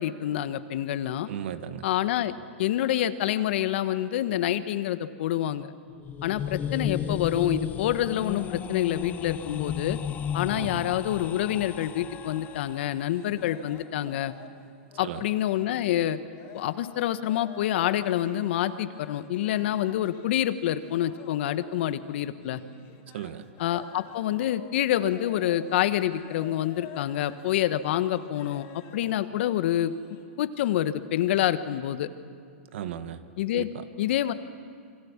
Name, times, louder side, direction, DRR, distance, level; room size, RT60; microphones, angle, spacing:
voice 1, 0.0-1.3 1.8-2.3 2.6-5.7 6.2-10.0 10.3-14.3 15.0-16.2 16.5-22.6 23.6-29.9 30.4-32.1 33.4-33.7 34.0-34.3, left 12 dB, 60° left, 12 dB, 1.3 m, -27 dB
voice 2, 1.3-1.9 10.5-10.8 15.0-15.2 23.1-23.4 32.7-33.2 33.5-33.8, right 10 dB, 65° right, 10 dB, 1.6 m, -36 dB
sound 1, 5.9-12.9, left 8 dB, 25° left, 0.7 m, -34 dB
sound 2, 11.8-14.6 14.8-30.4, left 7 dB, 40° left, 3.9 m, -50 dB
27.0 x 24.0 x 7.4 m, 2.2 s
hypercardioid pair, 125°, 7 cm